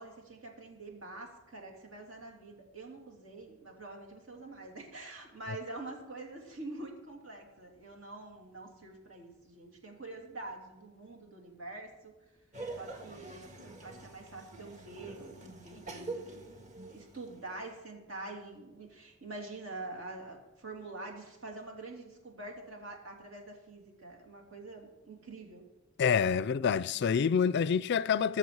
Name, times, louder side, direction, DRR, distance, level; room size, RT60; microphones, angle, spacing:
voice 1, 0.0-12.1 12.8-16.4 16.9-25.7, right 2 dB, 75° right, 3.0 m, -46 dB
Laughter, 12.5-17.6, right 3 dB, 40° right, 1.6 m, -45 dB
voice 2, 26.0-28.4, left 6 dB, 60° left, 0.4 m, -27 dB
20.0 x 7.1 x 4.8 m
head